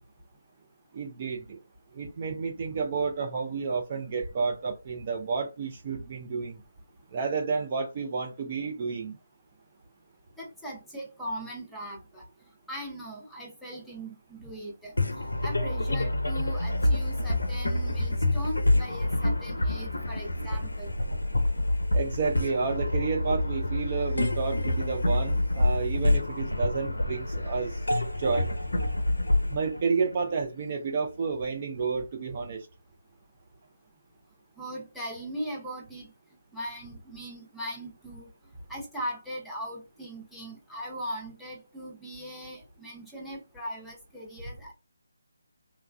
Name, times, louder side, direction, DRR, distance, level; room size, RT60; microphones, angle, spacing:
voice 1, 0.9-1.6 1.9-6.6 7.1-9.2 21.9-27.8 28.2-28.5 29.5-32.7, right 5 dB, 35° right, 0.4 m, -30 dB
voice 2, 10.4-20.9 34.6-36.1 36.5-38.3 38.7-44.7, equal, ahead, 0.8 m, -39 dB
sound 1, 15.0-30.6, left 1 dB, 75° left, 0.5 m, -27 dB
3.0 x 2.3 x 2.2 m
figure-of-eight pair, 150°, 0 cm